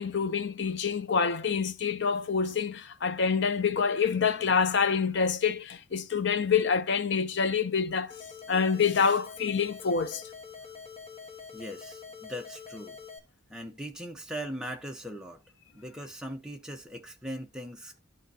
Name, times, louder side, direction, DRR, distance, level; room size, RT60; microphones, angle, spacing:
voice 1, 0.0-8.2 8.5-10.2, left 6 dB, 60° left, 0.6 m, -27 dB
sound 1, 8.1-13.2, left 5 dB, 30° left, 1.4 m, -45 dB
voice 2, 11.5-13.0 13.5-15.4 15.7-18.0, equal, 5° right, 1.0 m, -40 dB
12.5 x 4.4 x 2.8 m
head